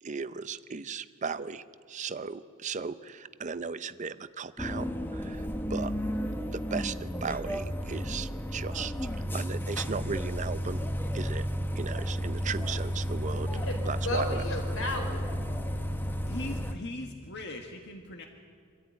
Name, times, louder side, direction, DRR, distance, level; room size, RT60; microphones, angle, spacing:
voice 1, 0.0-5.9 6.5-8.9 9.3-10.8 11.1-11.5 11.7-13.5 13.8-14.4, right 5 dB, 35° right, 14 dB, 0.6 m, -36 dB
sound 1, 4.6-16.7, equal, 10° left, 0.9 m, -32 dB
voice 2, 13.5-15.3, left 1 dB, 85° left, 1 dB, 4.8 m, -34 dB
voice 3, 16.3-18.3, left 1 dB, 55° left, 2 dB, 1.6 m, -40 dB
24.5 x 13.5 x 9.4 m, 2.1 s
head